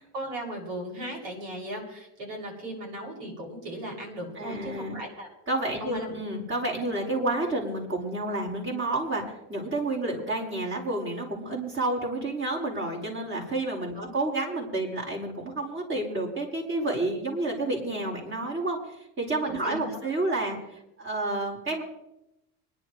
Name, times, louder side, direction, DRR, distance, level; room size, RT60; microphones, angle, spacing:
voice 1, 0.1-5.3 5.8-6.1 14.0-14.1 19.5-20.1, right 1 dB, 70° right, -1 dB, 7.1 m, -37 dB
voice 2, 4.3-5.0 5.5-9.2 9.5-20.6 21.0-21.8, right 2 dB, 25° right, -1 dB, 5.1 m, -30 dB
26.0 x 11.0 x 3.3 m, 0.87 s
supercardioid pair, 110°, 44 cm